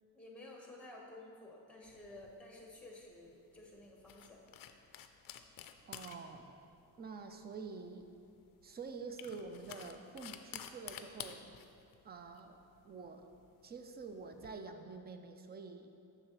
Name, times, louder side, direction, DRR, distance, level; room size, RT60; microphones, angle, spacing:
voice 1, 0.1-4.4, left 2 dB, 5° left, -1 dB, 1.1 m, -53 dB
sound 1, 1.9-14.5, left 9 dB, 55° left, 0.5 m, -53 dB
voice 2, 5.9-6.6 7.0-8.1 8.6-11.4 12.0-12.6 12.8-13.3 13.6-16.0, right 4 dB, 25° right, 7 dB, 0.4 m, -47 dB
7.5 x 6.5 x 3.0 m, 2.6 s
cardioid pair, 115°, 40 cm